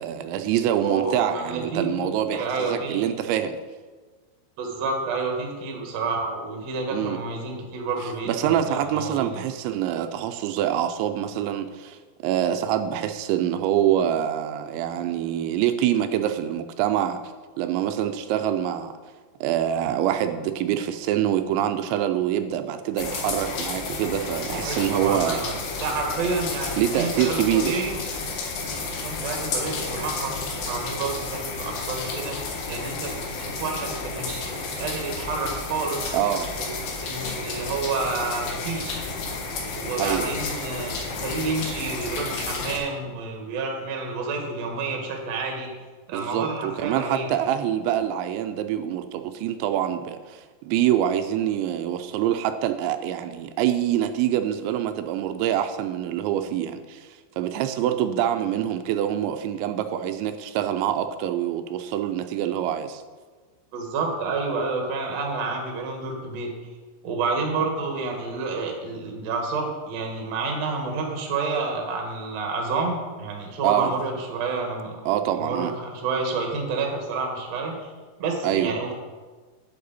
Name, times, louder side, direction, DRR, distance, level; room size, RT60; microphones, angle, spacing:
voice 1, 0.0-3.6 6.9-7.2 8.0-17.2 17.6-19.0 19.4-25.4 26.8-27.8 36.1-36.5 40.0-40.3 46.1-57.1 57.4-63.0 73.6-73.9 75.1-75.7 78.4-78.7, right 11 dB, 85° right, 9 dB, 2.8 m, -25 dB
voice 2, 0.8-2.0 2.3-3.1 4.6-9.3 24.6-28.0 29.0-30.4 30.7-32.4 32.7-36.1 36.6-36.7 37.0-39.0 39.7-40.9 41.2-45.7 46.1-47.3 63.7-66.5 67.0-75.0 75.4-77.7 78.2-78.9, right 4 dB, 60° right, 1 dB, 1.8 m, -29 dB
sound 1, 23.0-42.8, left 3 dB, 65° left, 2.6 m, -31 dB
9.5 x 8.4 x 4.1 m, 1.4 s
omnidirectional pair, 5.2 m